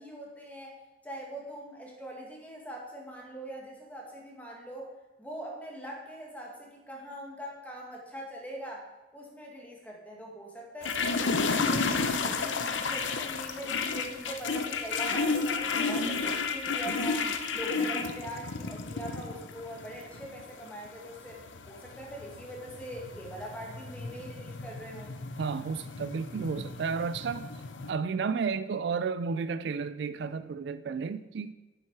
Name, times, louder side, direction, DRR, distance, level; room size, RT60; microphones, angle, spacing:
voice 1, 0.0-4.9 5.2-17.3 17.5-21.4 21.6-25.1, right 1 dB, 10° left, 1.9 m, -42 dB
sound 1, 10.8-27.9, left 4 dB, 85° left, 0.7 m, -32 dB
voice 2, 25.4-27.5 27.9-31.5, right 5 dB, 65° right, 0.3 m, -32 dB
10.0 x 7.3 x 4.7 m
head